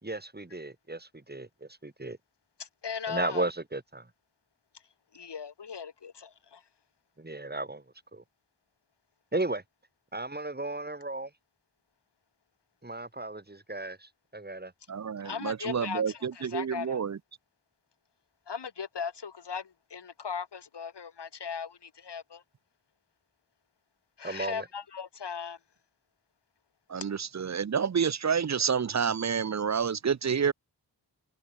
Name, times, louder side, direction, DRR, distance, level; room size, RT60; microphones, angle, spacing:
voice 1, 0.0-2.2 3.1-4.1 7.2-7.8 8.1-8.2 9.3-9.6 10.1-11.3 12.8-14.7 24.2-24.7, right 2 dB, 25° right, 3.3 m, -35 dB
voice 2, 2.6-3.5 5.1-6.6 15.2-17.0 18.5-22.4 24.2-25.6, left 6 dB, 75° left, 1.9 m, -38 dB
voice 3, 14.9-16.1 16.4-17.1 26.9-27.2 27.5-30.5, right 6 dB, 40° right, 0.6 m, -28 dB
cardioid pair, 45°, 42 cm